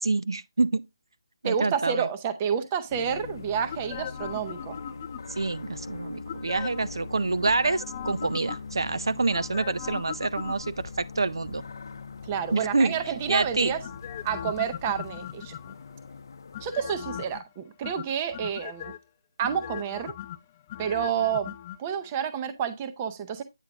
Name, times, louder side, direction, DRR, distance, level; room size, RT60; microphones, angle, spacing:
voice 1, 0.0-0.8 1.4-2.1 5.4-11.6 12.5-13.0 13.3-13.7, right 3 dB, 80° right, 0.5 m, -27 dB
voice 2, 1.4-4.8 12.3-13.8 14.2-15.5 16.6-18.9 19.4-20.1 20.8-23.4, right 8 dB, 20° right, 0.6 m, -29 dB
sound 1, 2.9-17.4, left 4 dB, 50° left, 0.7 m, -42 dB
sound 2, 3.7-5.5 6.3-7.0 7.4-8.9 9.3-11.0 13.8-15.9 16.5-17.4 17.8-19.0 19.4-21.8 22.1-22.2, left 11 dB, 20° left, 0.3 m, -39 dB
9.1 x 4.8 x 2.9 m
figure-of-eight pair, 170°, 2 cm